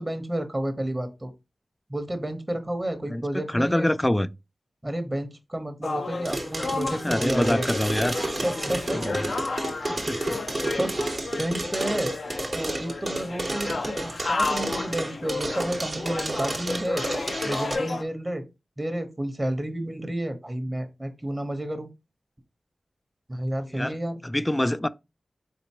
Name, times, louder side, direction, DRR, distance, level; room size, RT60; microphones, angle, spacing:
voice 1, 0.0-1.3 1.9-3.9 4.8-7.7 8.4-9.2 9.5-9.7 10.2-10.4 10.8-12.1 12.5-17.1 17.4-18.4 18.8-21.9 23.3-24.2, right 1 dB, 30° right, 1.0 m, -31 dB
voice 2, 3.1-4.3 7.0-8.2 8.9-9.1 10.0-10.4 23.7-24.0 24.2-24.9, left 1 dB, 20° left, 0.3 m, -25 dB
sound 1, 5.8-18.0, left 3 dB, 75° left, 0.6 m, -32 dB
sound 2, 6.2-17.7, right 2 dB, 55° right, 1.1 m, -31 dB
4.4 x 3.9 x 2.9 m
cardioid pair, 50°, 0 cm